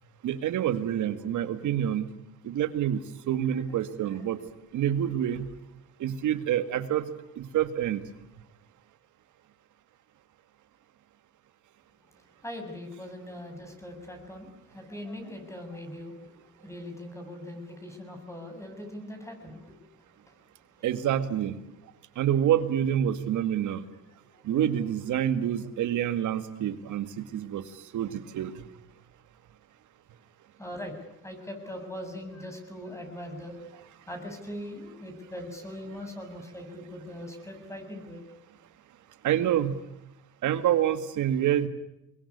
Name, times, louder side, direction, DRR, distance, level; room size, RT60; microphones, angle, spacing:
voice 1, 0.2-2.1 2.4-4.4 4.7-5.5 6.0-7.1 7.4-8.0 20.8-21.6 22.2-23.8 24.4-27.6 27.9-28.5 39.2-39.8 40.4-41.7, right 10 dB, 75° right, 11 dB, 2.1 m, -27 dB
voice 2, 12.4-16.2 16.6-19.8 24.4-24.5 24.9-25.0 30.6-30.9 31.2-33.6 34.1-38.2, left 1 dB, 10° left, 4 dB, 7.4 m, -41 dB
24.5 x 21.5 x 10.0 m, 0.86 s
cardioid pair, 90°, 30 cm